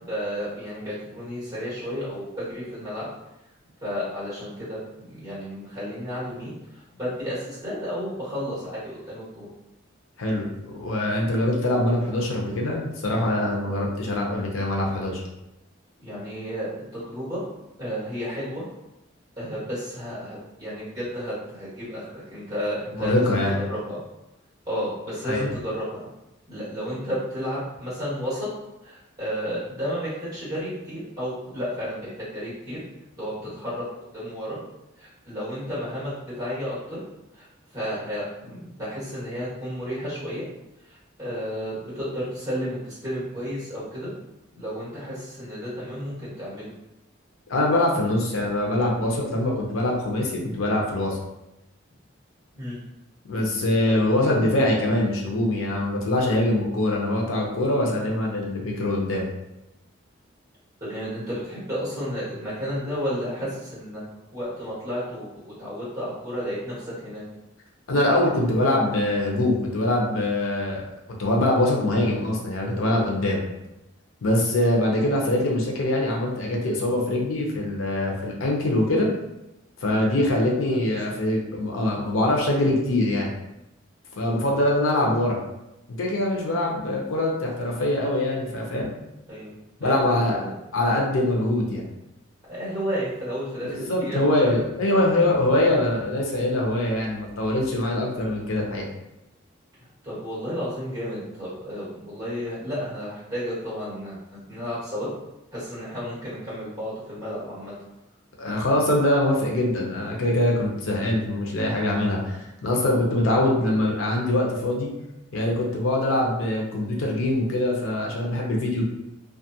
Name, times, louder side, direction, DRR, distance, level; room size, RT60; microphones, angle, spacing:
voice 1, 0.0-3.1 3.8-9.5 13.6-13.8 16.0-17.4 17.8-18.7 19.4-23.4 23.7-24.0 24.7-26.0 26.5-28.5 28.8-32.8 33.1-33.8 34.1-34.6 35.0-37.0 37.3-37.5 37.7-40.5 40.9-44.1 44.5-46.7 52.6-52.8 53.8-54.0 60.8-64.0 64.3-67.2 80.7-80.8 81.1-81.3 89.3-89.5 89.8-90.5 92.5-94.6 95.7-95.8 100.0-105.1 105.5-107.7, equal, 20° right, -9 dB, 1.5 m, -32 dB
voice 2, 10.2-15.2 22.9-23.6 25.2-25.5 47.5-51.2 53.3-59.3 67.9-73.4 74.2-79.1 79.8-83.3 84.2-85.4 86.0-88.9 89.8-90.4 90.7-91.9 93.6-98.9 108.4-114.9 115.3-118.8, left 1 dB, 90° left, -1 dB, 0.6 m, -23 dB
2.6 x 2.4 x 2.7 m, 0.92 s
head